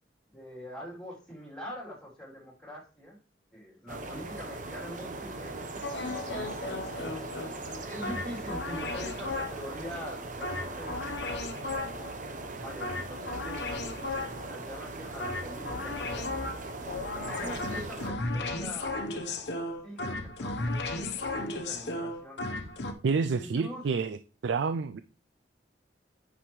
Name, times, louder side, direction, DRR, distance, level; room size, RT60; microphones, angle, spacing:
voice 1, 0.3-3.2 3.5-6.6 7.8-11.4 11.7-12.2 12.5-16.4 17.2-19.0 19.8-22.5 23.3-23.8, equal, 5° left, -3 dB, 3.3 m, -44 dB
sound 1, 3.9-18.1, right 2 dB, 45° right, 0.9 m, -40 dB
sound 2, 5.8-9.7 10.4-12.1 12.8-14.5 15.2-22.9, left 2 dB, 70° left, 1.0 m, -35 dB
voice 2, 23.0-24.2 24.4-25.0, right 5 dB, 80° right, 12 dB, 0.4 m, -28 dB
9.1 x 5.9 x 3.2 m, 0.35 s
head